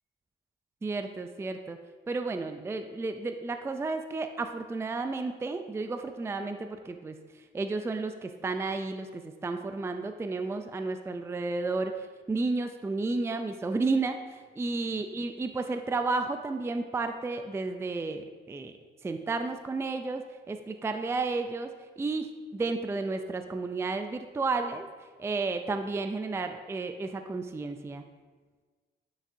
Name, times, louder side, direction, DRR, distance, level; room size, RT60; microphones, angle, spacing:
voice 1, 0.8-1.8 2.1-7.2 7.5-18.7 19.0-24.9 25.2-28.0, right 3 dB, 15° right, 7 dB, 0.4 m, -32 dB
9.0 x 6.2 x 2.6 m, 1.4 s
cardioid pair, 90°, 20 cm